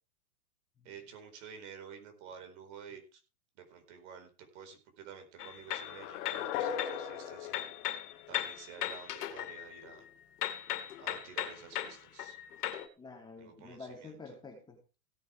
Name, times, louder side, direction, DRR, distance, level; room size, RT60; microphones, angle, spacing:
voice 1, 0.8-3.2 3.6-7.6 8.3-10.0 11.0-12.4 13.4-14.1, right 7 dB, 50° right, 6 dB, 4.6 m, -51 dB
sound 1, 5.4-7.1 7.4-10.1 10.4-12.9, left 11 dB, 80° left, 2.3 m, -38 dB
sound 2, 5.7-8.8, left 9 dB, 40° left, 1.8 m, -39 dB
voice 2, 13.0-14.8, left 3 dB, 10° left, 1 dB, 3.3 m, -49 dB
17.0 x 9.3 x 3.5 m, 0.33 s
supercardioid pair, 155°, 45 cm